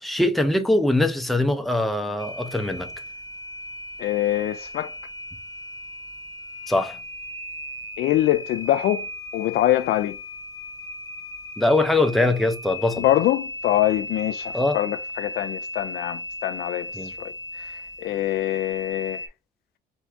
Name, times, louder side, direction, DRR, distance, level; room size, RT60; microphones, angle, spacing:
voice 1, 0.0-2.9 6.7-7.0 11.6-13.0 14.5-14.8 16.9-17.1, left 2 dB, ahead, 0.6 m, -22 dB
sound 1, 2.2-19.3, left 1 dB, 20° left, 1.0 m, -37 dB
voice 2, 4.0-4.9 8.0-9.1 9.3-10.2 13.0-19.2, left 14 dB, 70° left, 0.4 m, -24 dB
4.6 x 2.6 x 3.5 m
cardioid pair, 110°, 17 cm